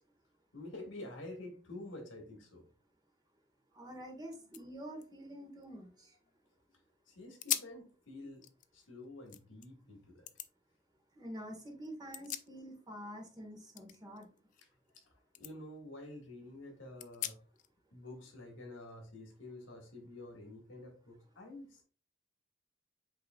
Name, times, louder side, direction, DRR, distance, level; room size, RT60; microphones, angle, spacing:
voice 1, 0.5-2.6 7.1-8.4 8.7-10.3 14.9-15.1 15.4-17.4 17.9-21.8, left 2 dB, 85° left, 2 dB, 1.5 m, -49 dB
voice 2, 3.7-5.9 11.2-14.3, equal, 20° right, 0 dB, 1.2 m, -47 dB
sound 1, 3.9-4.0 4.3-6.5 6.9-7.0 7.4-7.8 8.3-9.7 10.3-10.5 11.8-13.0 13.2-15.1 15.3-15.5 16.0-16.1 17.0-17.7, left 12 dB, 40° left, 0.3 m, -43 dB
7.9 x 2.9 x 2.2 m, 0.37 s
head